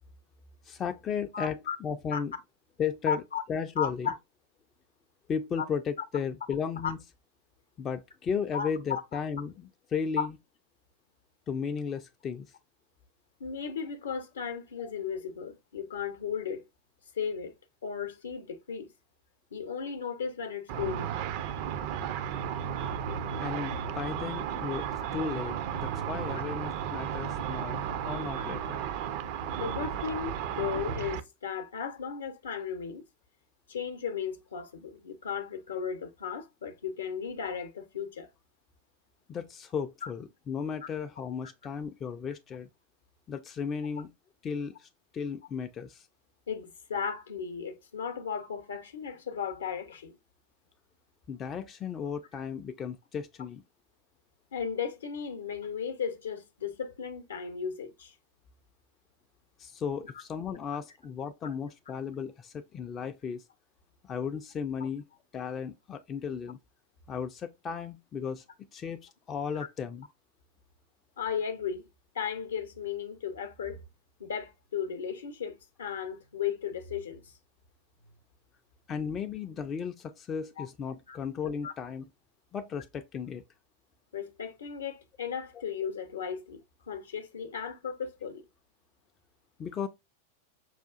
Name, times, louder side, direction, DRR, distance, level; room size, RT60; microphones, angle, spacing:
voice 1, 0.6-2.3 2.8-3.2 3.5-4.1 5.3-7.0 7.8-10.3 11.5-12.5 14.8-14.9 23.4-24.9 25.1-28.8 39.3-42.7 43.3-44.1 44.4-46.1 51.3-53.6 59.6-63.4 64.0-65.0 65.3-66.6 67.1-68.4 68.7-70.1 78.9-82.1 82.5-83.4 89.6-89.9, left 6 dB, 25° left, 0.3 m, -35 dB
voice 2, 1.3-1.8 2.1-2.2 3.1-3.4 3.8-4.1 5.6-5.7 6.8-6.9 8.5-9.0 10.2-10.3 13.4-16.6 17.1-17.5 17.8-18.9 19.5-21.1 28.3-28.4 29.6-33.1 33.7-38.3 40.0-40.1 40.8-40.9 41.4-41.5 46.5-50.2 54.5-58.1 71.2-71.8 72.1-73.8 74.2-77.3 80.6-80.7 81.1-81.2 81.6-81.7 84.1-86.6 86.9-88.4, left 7 dB, 65° left, 0.6 m, -35 dB
Car / Traffic noise roadway noise / Engine, 20.7-31.2, right 8 dB, 45° right, 0.4 m, -34 dB
5.6 x 2.3 x 2.4 m
figure-of-eight pair, 90°, 0 cm